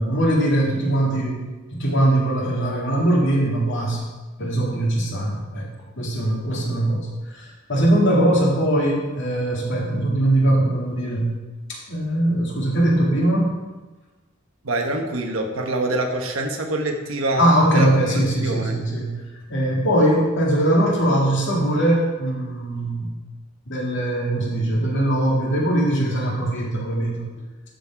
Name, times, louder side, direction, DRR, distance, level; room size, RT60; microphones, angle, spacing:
voice 1, 0.0-1.4 1.7-4.1 4.4-5.7 6.0-11.3 11.7-13.5 17.4-19.1 19.5-23.1 23.7-27.3, right 1 dB, 65° left, -3 dB, 2.2 m, -21 dB
voice 2, 14.6-17.5 17.7-18.8, right 2 dB, 85° right, 3 dB, 1.2 m, -25 dB
12.0 x 4.2 x 4.6 m, 1.2 s
head